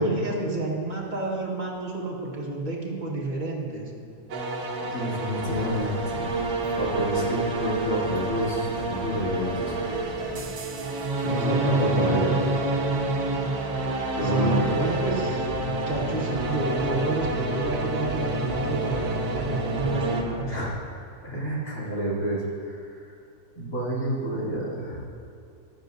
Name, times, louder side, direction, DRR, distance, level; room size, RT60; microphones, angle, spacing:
voice 1, 0.0-3.9 11.3-12.4 14.2-15.4 15.8-20.5, right 2 dB, 30° right, -3 dB, 1.7 m, -29 dB
sound 1, 4.3-20.2, right 2 dB, 80° right, 1.6 m, -28 dB
voice 2, 4.8-6.3 6.7-9.8 11.4-12.4 14.1-14.6 20.5-20.9 21.2-22.9 23.5-25.0, equal, 60° left, -7 dB, 3.3 m, -29 dB
sound 2, 5.4-10.4, left 1 dB, 85° left, 1.9 m, -40 dB
15.0 x 12.0 x 2.6 m, 2.5 s
omnidirectional pair, 1.6 m